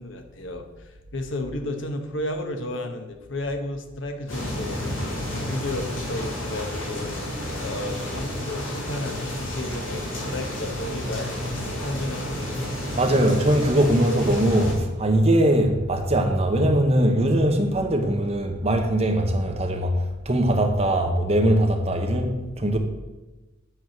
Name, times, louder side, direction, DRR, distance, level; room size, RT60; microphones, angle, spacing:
voice 1, 0.0-5.0 5.3-7.1 7.6-13.4, left 1 dB, 65° left, 1.0 m, -33 dB
sound 1, 4.3-14.7, left 1 dB, 80° left, 3.1 m, -31 dB
voice 2, 13.0-22.8, right 1 dB, 30° right, 0.9 m, -21 dB
7.8 x 4.7 x 5.9 m
head